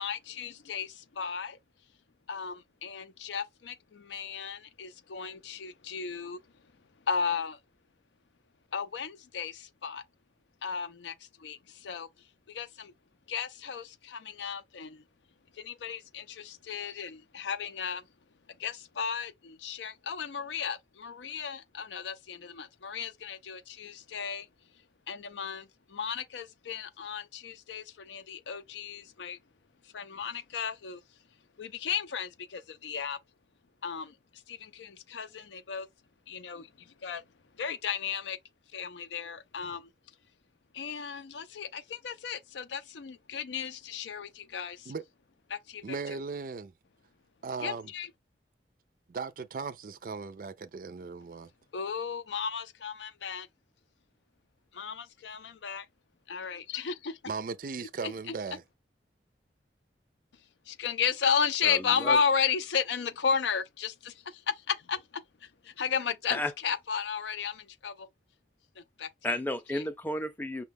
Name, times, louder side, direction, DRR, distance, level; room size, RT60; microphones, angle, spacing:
voice 1, 0.0-1.6 2.3-6.4 7.1-7.6 8.7-10.0 10.6-12.1 12.5-12.9 13.3-15.0 15.5-18.0 18.6-24.5 25.1-29.4 29.8-31.0 31.6-33.2 33.8-35.9 36.3-37.2 37.6-38.4 38.7-39.9 40.7-44.9 45.5-46.0 47.6-48.1 51.7-53.5 54.7-55.9 56.3-57.1 58.0-58.4 60.7-68.1 68.8-69.1 69.7-69.9, left 6 dB, 85° left, 0.5 m, -34 dB
voice 2, 45.8-46.7 47.4-47.9 49.1-51.5 57.3-58.6, right 4 dB, 50° right, 0.4 m, -37 dB
voice 3, 61.6-62.2 66.3-66.5 69.2-70.6, left 1 dB, 10° left, 0.5 m, -32 dB
5.7 x 2.3 x 3.4 m
head